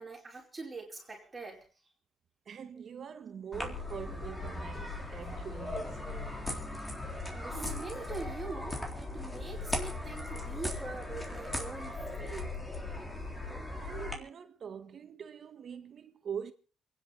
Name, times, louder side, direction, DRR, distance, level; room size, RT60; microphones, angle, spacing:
voice 1, 0.0-1.7 5.2-5.3 7.3-12.5, right 4 dB, 25° right, 5.0 m, -43 dB
voice 2, 2.5-6.4 13.8-16.5, right 7 dB, 55° right, 1.7 m, -43 dB
sound 1, 3.5-14.1, left 2 dB, 15° left, 3.8 m, -38 dB
sound 2, 4.1-8.6, left 2 dB, 45° left, 5.8 m, -53 dB
28.5 x 10.5 x 4.1 m
cardioid pair, 110°, 0 cm